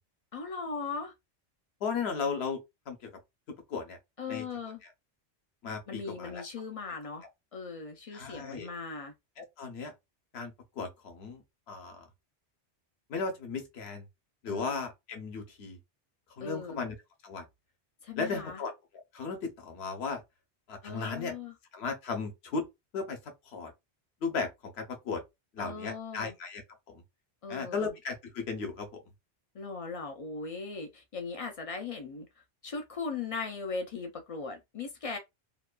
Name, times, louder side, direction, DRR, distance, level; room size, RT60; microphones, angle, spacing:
voice 1, 0.3-1.1 4.2-4.8 5.9-7.3 7.5-9.1 14.5-14.8 16.4-16.8 18.0-18.6 20.8-21.5 25.6-26.3 27.4-27.9 29.5-32.3 32.6-35.2, left 4 dB, 55° left, 0.4 m, -38 dB
voice 2, 1.8-2.6 2.9-3.1 3.7-4.0 4.3-4.5 5.6-6.4 8.1-8.7 9.4-9.9 10.3-12.1 13.1-14.1 14.4-15.8 16.4-16.9 17.2-17.4 18.2-18.7 19.1-20.2 20.7-21.3 21.7-22.6 22.9-23.7 24.2-25.2 25.5-26.6 26.9-27.0 27.5-29.0, left 4 dB, 70° left, 1.0 m, -36 dB
2.8 x 2.2 x 2.3 m
omnidirectional pair, 1.1 m